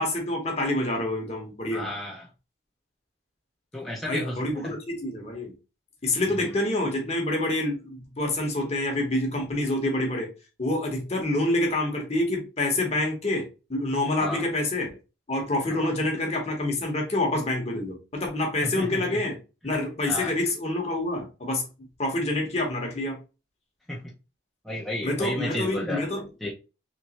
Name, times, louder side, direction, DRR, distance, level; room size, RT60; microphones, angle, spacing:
voice 1, 0.0-1.9 4.0-5.6 6.0-10.3 10.6-14.9 15.3-19.4 19.6-21.6 22.0-23.2 25.0-26.3, left 1 dB, 30° left, 0.9 m, -27 dB
voice 2, 1.7-2.3 3.7-4.7 6.4-6.5 14.2-14.5 15.7-15.9 18.6-19.2 20.1-20.3 23.9-24.0 24.6-26.0 26.4-26.5, left 1 dB, ahead, 0.5 m, -33 dB
3.2 x 3.0 x 2.8 m
head